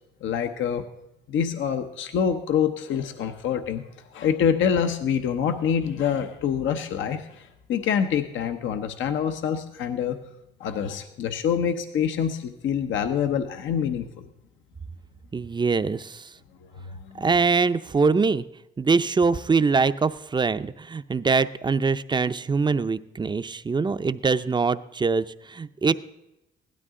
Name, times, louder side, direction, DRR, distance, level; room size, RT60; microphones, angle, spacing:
voice 1, 0.2-0.8 1.3-3.9 4.1-10.2 10.6-14.3 16.7-17.3, left 8 dB, 75° left, 7 dB, 0.9 m, -26 dB
voice 2, 15.3-16.3 17.2-18.4 18.8-25.9, right 4 dB, 20° right, 13 dB, 0.5 m, -23 dB
16.5 x 12.5 x 3.7 m, 0.93 s
cardioid pair, 90°, 20 cm